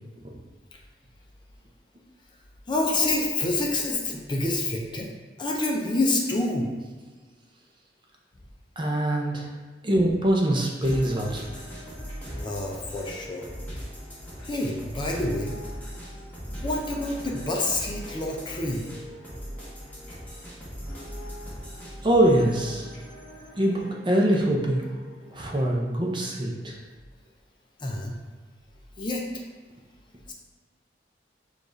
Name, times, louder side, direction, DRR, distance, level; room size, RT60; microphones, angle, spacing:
voice 1, 2.7-5.1 5.4-6.7 12.4-13.5 14.4-15.6 16.5-18.9 27.8-28.2 29.0-29.2 30.3-30.4, left 2 dB, 25° left, 0 dB, 0.5 m, -27 dB
voice 2, 8.8-9.5 9.8-11.4 22.0-22.9 23.6-24.8 25.3-26.8, right 1 dB, 25° right, -1 dB, 0.6 m, -23 dB
sound 1, 10.8-25.7, equal, 10° left, 1.1 m, -40 dB
6.6 x 2.4 x 2.6 m, 1.4 s
head